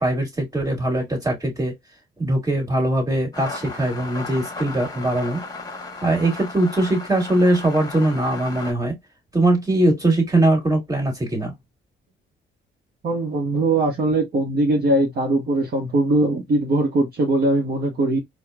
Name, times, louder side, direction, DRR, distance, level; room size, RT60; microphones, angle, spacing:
voice 1, 0.0-1.7 2.2-5.4 6.0-9.0 9.3-11.5, right 1 dB, 15° right, 1.9 m, -21 dB
sound 1, 3.3-8.7, left 3 dB, 20° left, 1.2 m, -35 dB
voice 2, 13.0-18.2, right 2 dB, 55° right, 1.1 m, -21 dB
4.3 x 2.3 x 2.3 m
cardioid pair, 90°, 20 cm